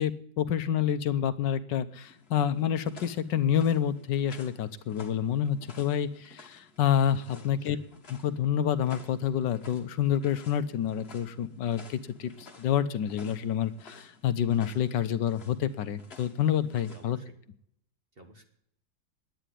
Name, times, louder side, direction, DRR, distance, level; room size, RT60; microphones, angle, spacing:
voice 1, 0.0-7.8 8.2-17.2, left 9 dB, 75° left, 12 dB, 1.4 m, -28 dB
sound 1, 2.0-17.1, left 3 dB, 35° left, 1.6 m, -53 dB
voice 2, 7.3-7.8 16.9-17.3 18.1-18.4, right 1 dB, 30° right, 4 dB, 1.7 m, -52 dB
10.0 x 9.2 x 10.0 m, 0.69 s
omnidirectional pair, 2.0 m